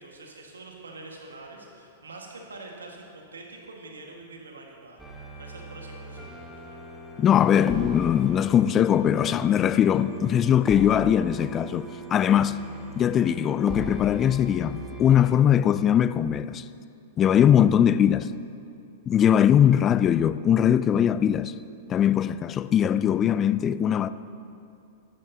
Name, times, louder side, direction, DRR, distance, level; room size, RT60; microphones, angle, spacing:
voice 1, 0.0-5.0 5.4-6.8, right 2 dB, 85° right, 1.7 m, -45 dB
sound 1, 5.0-15.3, right 1 dB, 5° right, 1.4 m, -39 dB
voice 2, 7.2-12.6 13.0-16.6 17.2-18.3 19.1-21.5 21.9-24.1, left 9 dB, 30° left, 0.3 m, -21 dB
13.0 x 11.0 x 2.9 m
hypercardioid pair, 105°, 0 cm